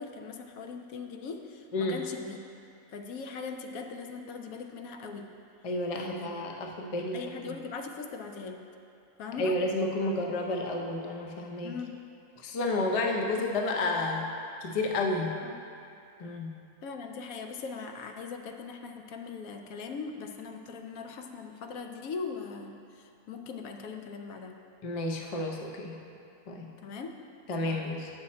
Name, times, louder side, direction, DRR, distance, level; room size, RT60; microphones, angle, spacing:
voice 1, 0.0-2.4 2.9-5.3 5.9-6.3 7.1-8.6 9.2-9.6 10.0-10.1 11.6-11.9 13.3-13.4 15.4-15.5 16.8-24.6 26.8-27.2 27.6-27.8, left 5 dB, 70° left, 4 dB, 1.0 m, -40 dB
voice 2, 5.6-7.2 9.4-11.7 12.4-14.3 14.6-15.4 16.2-16.5 24.8-26.0 26.5-26.7 27.5-28.1, left 2 dB, 40° left, 1 dB, 0.5 m, -31 dB
8.5 x 6.3 x 4.2 m, 2.6 s
omnidirectional pair, 1.6 m